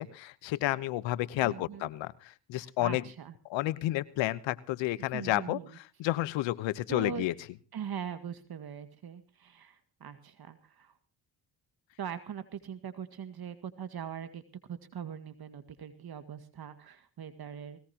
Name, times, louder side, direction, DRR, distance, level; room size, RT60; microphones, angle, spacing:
voice 1, 0.0-3.0 3.5-7.3, left 16 dB, 85° left, 17 dB, 1.1 m, -31 dB
voice 2, 1.4-1.9 2.6-3.3 5.1-5.8 6.9-7.3 7.7-10.9 12.0-14.4 14.7-17.8, right 8 dB, 55° right, 10 dB, 2.1 m, -41 dB
19.5 x 18.5 x 3.0 m, 0.33 s
supercardioid pair, 70°, 44 cm